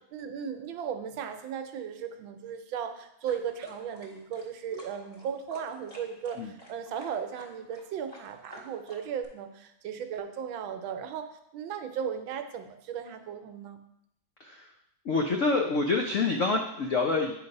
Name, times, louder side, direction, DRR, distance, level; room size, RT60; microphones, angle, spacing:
voice 1, 0.1-13.8, right 8 dB, 80° right, 7 dB, 1.5 m, -36 dB
sound 1, 3.3-9.3, right 2 dB, 20° left, 1.7 m, -49 dB
voice 2, 14.4-14.7 15.0-17.4, left 3 dB, 75° left, 2 dB, 0.7 m, -27 dB
9.1 x 3.3 x 5.3 m, 0.78 s
omnidirectional pair, 2.1 m